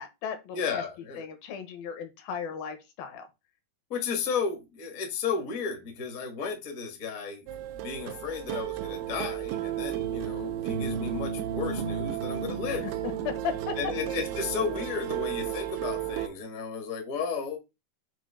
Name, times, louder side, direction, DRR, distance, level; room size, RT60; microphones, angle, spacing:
voice 1, 0.0-0.8 1.2-3.3 12.7-13.8, left 7 dB, 70° left, 2.7 m, -36 dB
voice 2, 0.5-1.2 3.9-7.5 7.8-12.8 13.8-17.6, left 5 dB, 55° left, 0.9 m, -33 dB
sound 1, 7.5-16.3, right 9 dB, 80° right, 2.5 m, -33 dB
7.5 x 2.8 x 5.5 m
omnidirectional pair, 4.6 m